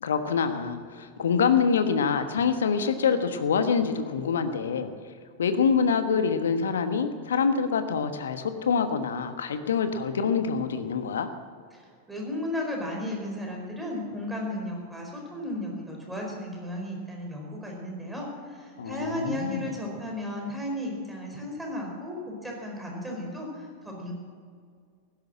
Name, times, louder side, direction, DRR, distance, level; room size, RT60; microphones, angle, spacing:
voice 1, 0.0-4.9 5.4-11.3 18.8-19.7, left 6 dB, 65° left, 9 dB, 1.3 m, -25 dB
voice 2, 12.1-24.1, left 1 dB, 5° right, -1 dB, 4.7 m, -34 dB
16.0 x 12.0 x 7.5 m, 2.1 s
figure-of-eight pair, 90°, 0 cm